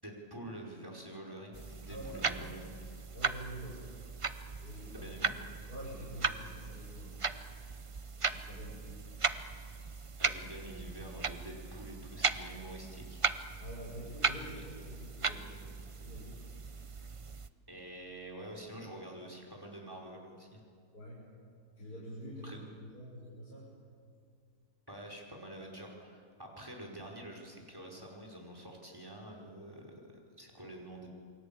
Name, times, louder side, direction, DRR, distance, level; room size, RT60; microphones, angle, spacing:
voice 1, 0.0-2.7 4.9-5.3 10.2-13.2 14.3-14.6 17.7-20.6 22.4-22.6 24.9-31.1, right 1 dB, 15° right, 0 dB, 4.7 m, -47 dB
sound 1, 1.5-17.5, right 4 dB, 55° right, 0.3 m, -37 dB
voice 2, 1.9-2.5 3.1-3.9 4.6-5.1 5.7-7.6 8.2-9.0 10.2-10.3 13.6-16.4 20.9-21.2 21.8-23.7, equal, 65° left, -6 dB, 6.4 m, -47 dB
28.5 x 22.0 x 8.7 m, 2.3 s
omnidirectional pair, 1.8 m